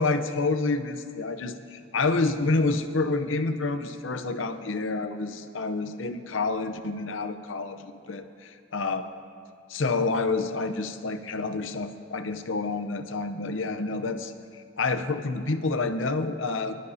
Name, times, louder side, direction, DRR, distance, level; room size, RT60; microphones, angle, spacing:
voice 1, 0.0-9.1 9.7-14.3 14.8-16.7, left 3 dB, 75° left, 8 dB, 0.7 m, -28 dB
24.5 x 12.5 x 2.8 m, 2.3 s
head